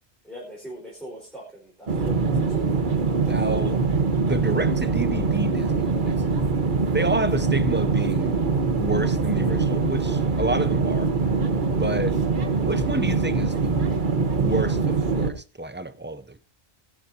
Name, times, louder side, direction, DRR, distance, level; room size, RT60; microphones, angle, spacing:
voice 1, 0.2-2.7 3.4-3.8 11.6-11.8, equal, ahead, 4.6 m, -42 dB
sound 1, 1.9-15.3, right 4 dB, 50° right, 1.4 m, -23 dB
voice 2, 3.2-3.8 4.2-6.2 6.9-8.4 8.8-11.1 11.7-12.2 12.6-13.9 14.4-16.4, right 2 dB, 15° right, 0.3 m, -29 dB
19.5 x 12.5 x 2.8 m
omnidirectional pair, 1.1 m